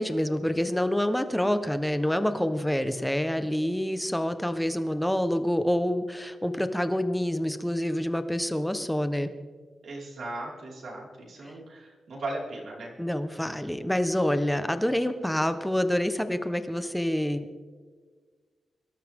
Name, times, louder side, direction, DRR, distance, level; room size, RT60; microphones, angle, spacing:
voice 1, 0.0-9.3 11.4-11.5 13.0-17.6, left 1 dB, 5° left, 9 dB, 1.2 m, -27 dB
voice 2, 9.8-12.9, right 2 dB, 65° right, -3 dB, 5.2 m, -37 dB
24.0 x 13.0 x 3.7 m, 1.5 s
cardioid pair, 100°, 0 cm